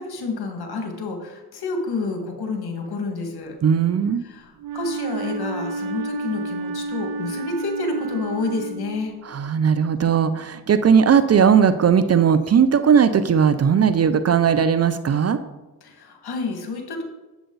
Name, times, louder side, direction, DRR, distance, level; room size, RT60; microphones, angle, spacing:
voice 1, 0.0-3.6 4.2-9.1 15.8-17.0, left 3 dB, 60° left, 3 dB, 2.0 m, -29 dB
voice 2, 3.6-4.2 9.3-15.4, right 7 dB, 35° right, 12 dB, 0.5 m, -18 dB
Wind instrument woodwind instrument, 4.6-9.4, right 3 dB, 75° right, 0.9 m, -31 dB
8.1 x 7.7 x 3.9 m, 1.1 s
supercardioid pair, 60°, 42 cm